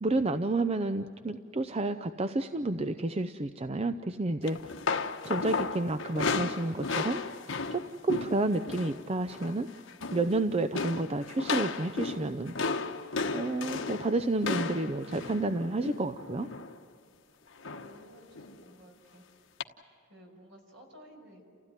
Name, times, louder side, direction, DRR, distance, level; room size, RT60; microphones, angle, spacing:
voice 1, 0.0-4.6 5.2-7.2 7.7-9.7 10.1-12.5 13.3-16.5, right 2 dB, 30° right, 9 dB, 0.6 m, -30 dB
sound 1, 4.5-9.0 9.3-9.6 9.9-10.4 10.7-16.8 17.6-18.0 18.3-18.5 19.6-19.7, left 4 dB, 75° left, 1.2 m, -34 dB
voice 2, 17.6-19.4 20.1-21.5, right 1 dB, 70° right, 2 dB, 5.9 m, -54 dB
29.5 x 16.0 x 9.9 m, 2.4 s
head